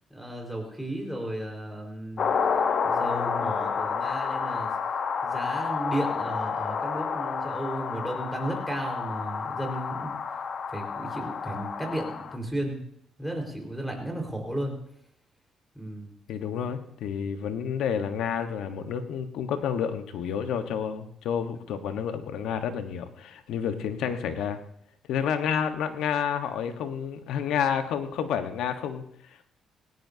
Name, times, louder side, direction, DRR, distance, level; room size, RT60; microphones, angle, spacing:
voice 1, 0.1-2.3 2.8-4.7 5.2-10.2 10.7-12.8 13.2-14.8 15.7-16.1, right 1 dB, ahead, 1 dB, 4.6 m, -34 dB
sound 1, 2.2-12.4, left 6 dB, 55° left, 1.2 m, -30 dB
voice 2, 16.3-24.6 25.1-29.5, left 8 dB, 85° left, 8 dB, 1.3 m, -30 dB
18.5 x 17.5 x 2.8 m, 0.70 s
cardioid pair, 90°, 0 cm